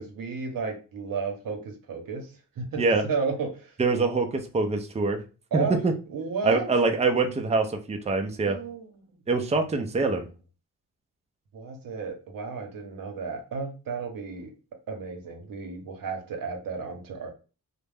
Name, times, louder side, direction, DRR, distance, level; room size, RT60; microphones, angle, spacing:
voice 1, 0.0-3.7 5.5-5.8 6.1-6.7 8.4-9.0 11.5-14.5 14.9-17.3, right 5 dB, 70° right, 3 dB, 0.8 m, -33 dB
voice 2, 3.8-5.2 5.5-5.9 6.4-8.6 9.3-10.3, right 3 dB, 20° right, 4 dB, 0.5 m, -24 dB
2.3 x 2.1 x 3.3 m, 0.34 s
cardioid pair, 65°, 35 cm